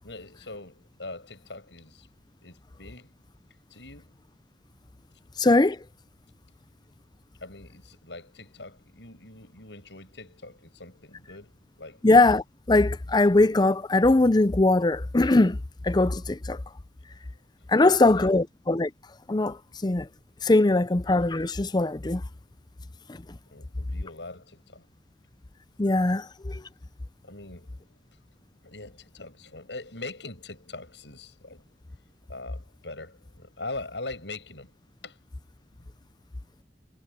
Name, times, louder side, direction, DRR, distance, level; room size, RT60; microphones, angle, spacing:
voice 1, 0.0-2.1 2.4-3.2 3.7-4.1 7.4-12.0 17.7-18.4 23.5-24.9 27.2-28.2 28.6-31.7 32.3-34.7 35.0-35.2 35.8-35.9, left 2 dB, 85° left, 7.2 m, -42 dB
voice 2, 5.4-5.8 12.0-15.6 15.8-16.6 17.7-18.9 19.3-20.1 20.4-22.2 25.8-26.6, left 2 dB, 25° left, 0.6 m, -21 dB
head